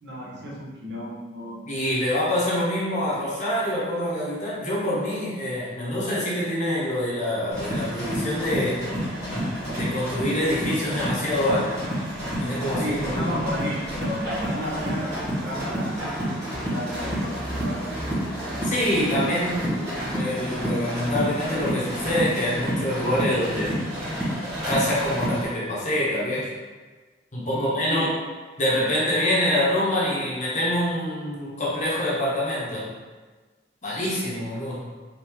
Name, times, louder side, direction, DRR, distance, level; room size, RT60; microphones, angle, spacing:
voice 1, 0.0-1.6 12.8-16.0 16.6-17.8 27.5-28.1, equal, 70° right, -4 dB, 0.8 m, -32 dB
voice 2, 1.7-8.9 9.3-11.7 12.4-13.4 18.6-23.7 24.7-26.5 27.3-28.1 28.6-32.9 33.8-34.8, left 1 dB, 40° left, -7 dB, 0.8 m, -26 dB
sound 1, 7.5-25.4, equal, 15° right, 1.3 m, -29 dB
3.5 x 2.6 x 2.9 m, 1.3 s
head